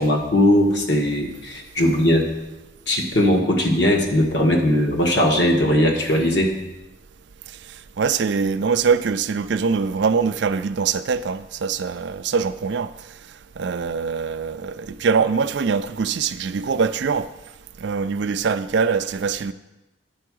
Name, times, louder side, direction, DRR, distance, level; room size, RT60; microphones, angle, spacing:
voice 1, 0.0-2.3 2.9-6.5, left 1 dB, 60° left, 1.4 m, -19 dB
voice 2, 8.0-12.9 13.6-17.3 17.8-19.5, right 5 dB, 60° right, 0.4 m, -23 dB
9.8 x 4.7 x 6.1 m
head